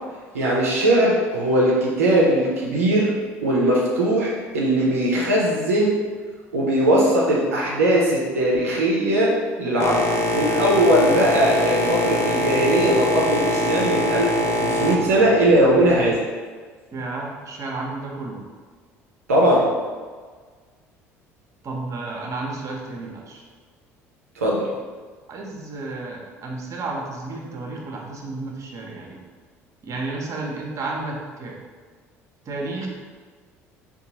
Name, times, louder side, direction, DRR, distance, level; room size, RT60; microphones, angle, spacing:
voice 1, 0.3-3.1 3.4-5.9 6.5-10.1 10.3-16.2 19.3-19.7 24.4-24.7, right 1 dB, 90° right, -4 dB, 0.5 m, -19 dB
Boat Water vehicle, 9.8-16.2, left 1 dB, 40° left, 0.5 m, -24 dB
voice 2, 16.9-18.4 21.6-23.4 25.3-29.2 29.8-31.6 32.5-32.9, right 3 dB, 45° right, -1 dB, 0.7 m, -32 dB
3.7 x 2.3 x 2.8 m, 1.5 s
hypercardioid pair, 65°, 7 cm